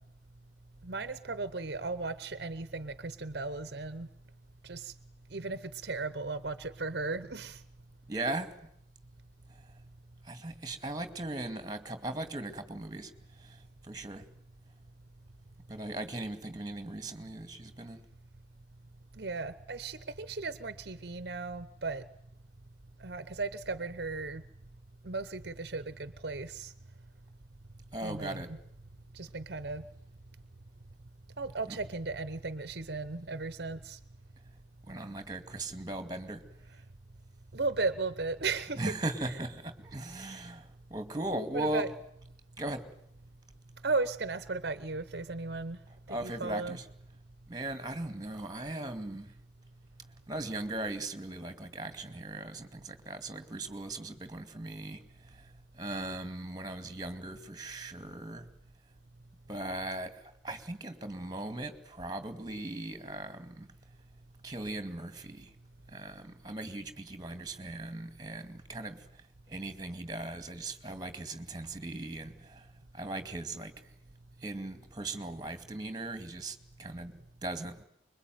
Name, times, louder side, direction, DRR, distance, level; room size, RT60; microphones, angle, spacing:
voice 1, 0.8-4.1 4.6-4.9 5.3-7.6 19.2-22.0 23.0-24.4 25.0-26.7 28.0-28.6 29.1-29.8 31.4-34.0 37.5-38.8 41.5-41.9 43.8-45.8 46.1-46.8, right 3 dB, 55° right, 13 dB, 1.0 m, -36 dB
voice 2, 8.1-8.6 10.2-13.1 13.4-14.2 15.7-18.0 27.9-28.5 31.7-31.8 34.9-36.4 38.8-41.9 42.6-42.9 46.1-46.8 47.5-49.3 50.3-58.5 59.5-63.7 64.4-65.5 65.9-69.0 69.5-72.7 72.9-73.8 74.4-77.8, right 2 dB, 20° right, 9 dB, 2.3 m, -38 dB
25.0 x 22.5 x 9.4 m, 0.76 s
head